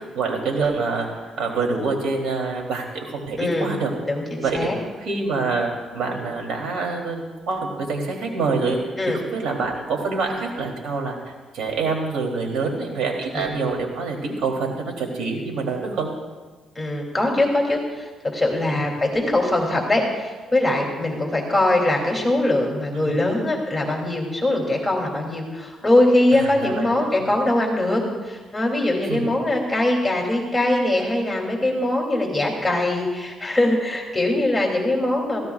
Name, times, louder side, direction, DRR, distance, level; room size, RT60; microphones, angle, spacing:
voice 1, 0.0-3.9 4.4-4.7 5.0-8.8 9.1-16.1 18.7-18.8 22.9-23.1 26.4-26.8 29.1-29.3, right 4 dB, 80° right, 1 dB, 2.9 m, -26 dB
voice 2, 3.4-3.7 4.1-4.7 9.0-9.2 13.3-13.6 16.7-35.5, left 1 dB, 10° left, -1 dB, 2.8 m, -22 dB
20.5 x 15.5 x 2.4 m, 1.3 s
cardioid pair, 90°, 0 cm